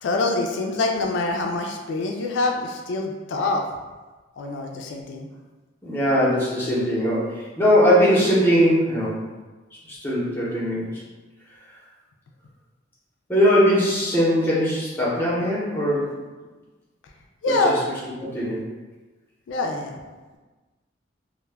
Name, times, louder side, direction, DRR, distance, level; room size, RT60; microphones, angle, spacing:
voice 1, 0.0-3.6 4.4-5.3 17.4-17.7 19.5-20.0, left 2 dB, 80° left, 2 dB, 0.3 m, -25 dB
voice 2, 5.8-9.2 9.9-11.0 13.3-16.1 17.5-17.7 18.2-18.6, equal, 10° left, -7 dB, 0.7 m, -20 dB
2.1 x 2.0 x 3.3 m, 1.2 s
head